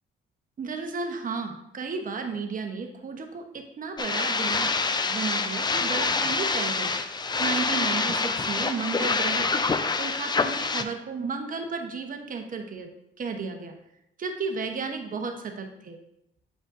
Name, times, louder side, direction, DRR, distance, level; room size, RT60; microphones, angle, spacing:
voice 1, 0.6-4.7 5.0-6.9 7.4-9.7 10.0-12.9 13.2-13.7 14.2-16.0, right 4 dB, 45° right, 5 dB, 0.9 m, -33 dB
sound 1, 4.0-10.8, left 4 dB, 20° left, 0.4 m, -26 dB
7.7 x 5.0 x 2.5 m, 0.82 s
cardioid pair, 90°, 20 cm